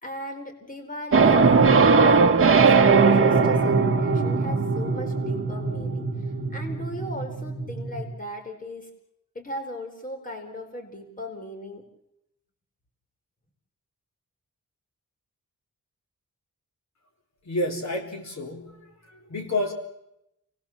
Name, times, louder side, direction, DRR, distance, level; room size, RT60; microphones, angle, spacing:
voice 1, 0.0-8.9 9.3-11.8, left 1 dB, 25° left, 4 dB, 4.6 m, -38 dB
sound 1, 1.1-8.1, right 4 dB, 40° right, 1.5 m, -20 dB
voice 2, 17.5-19.7, left 1 dB, 60° left, 2 dB, 4.0 m, -30 dB
29.5 x 20.0 x 7.4 m, 0.81 s
wide cardioid pair, 160°, 31 cm